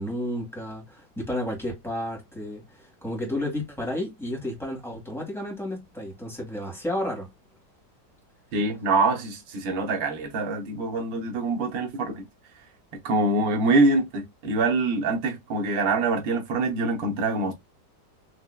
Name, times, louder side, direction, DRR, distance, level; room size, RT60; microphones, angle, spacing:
voice 1, 0.0-7.3, left 1 dB, ahead, 1.5 m, -32 dB
voice 2, 8.5-12.2 13.0-17.5, right 3 dB, 85° right, 1.7 m, -24 dB
4.6 x 2.8 x 2.2 m
omnidirectional pair, 2.0 m